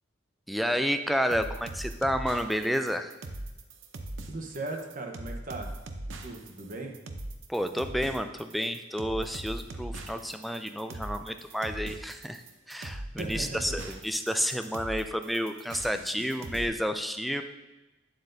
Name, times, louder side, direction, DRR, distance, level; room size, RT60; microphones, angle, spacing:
voice 1, 0.5-3.1 7.5-17.4, equal, ahead, 7 dB, 0.3 m, -30 dB
sound 1, 1.3-16.7, right 1 dB, 80° right, 0.7 m, -40 dB
voice 2, 4.3-5.7 6.2-6.9 13.1-13.8, right 2 dB, 45° right, 2 dB, 0.9 m, -37 dB
9.1 x 7.6 x 2.6 m, 1.1 s
head